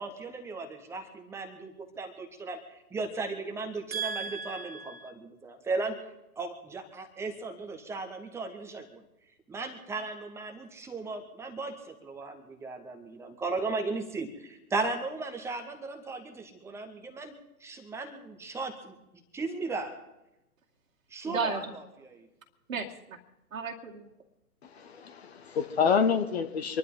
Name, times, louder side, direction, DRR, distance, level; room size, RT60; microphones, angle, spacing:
voice 1, 0.0-6.0 6.4-9.0 9.5-17.3 17.6-18.9 19.3-20.0 21.1-21.6 22.0-22.3, right 3 dB, 5° right, 5 dB, 1.2 m, -36 dB
voice 2, 3.9-5.1 21.3-21.7 22.7-23.2 23.5-24.1, right 5 dB, 55° right, 0 dB, 2.0 m, -34 dB
voice 3, 24.6-26.8, left 6 dB, 40° left, 8 dB, 1.3 m, -27 dB
26.0 x 11.5 x 3.9 m, 0.91 s
figure-of-eight pair, 125°, 46 cm